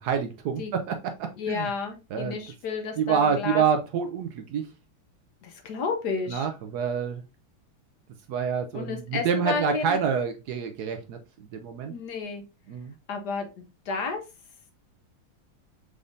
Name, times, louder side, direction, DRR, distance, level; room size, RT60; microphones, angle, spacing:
voice 1, 0.0-1.7 2.1-2.3 3.0-4.7 6.3-7.2 8.3-11.2 11.5-11.9 12.7-13.0, right 6 dB, 75° right, 7 dB, 0.9 m, -27 dB
voice 2, 1.4-3.6 5.4-6.5 8.7-10.0 11.9-12.4 13.1-13.5 13.9-14.2, left 4 dB, 60° left, 4 dB, 1.2 m, -31 dB
5.0 x 3.4 x 2.6 m, 0.27 s
omnidirectional pair, 2.3 m